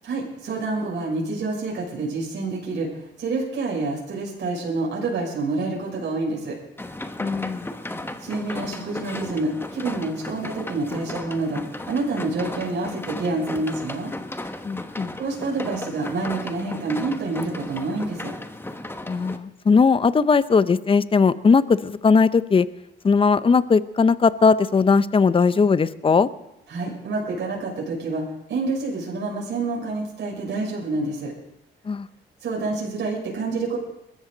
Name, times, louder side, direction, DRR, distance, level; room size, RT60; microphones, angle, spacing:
voice 1, 0.0-6.5 8.2-14.1 15.2-18.3 26.7-31.3 32.4-33.8, right 3 dB, 60° right, -3 dB, 6.0 m, -28 dB
sound 1, 6.8-19.4, left 1 dB, 10° left, 1.0 m, -35 dB
voice 2, 7.2-7.7 14.6-15.1 19.1-22.7 23.0-26.3 31.8-32.1, left 5 dB, 25° left, 16 dB, 0.6 m, -19 dB
22.5 x 13.5 x 3.9 m, 0.87 s
cardioid pair, 90°, 20 cm